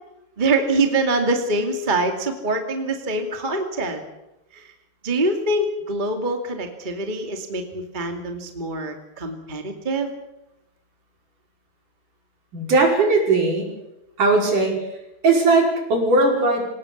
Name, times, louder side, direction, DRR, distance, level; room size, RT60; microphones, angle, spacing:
voice 1, 0.4-4.0 4.5-4.6 5.0-10.1, right 2 dB, 15° right, 4 dB, 1.8 m, -24 dB
voice 2, 12.5-13.7 14.2-14.8 15.2-16.7, right 3 dB, 50° right, 0 dB, 6.8 m, -18 dB
27.0 x 18.5 x 7.3 m, 0.90 s
omnidirectional pair, 4.7 m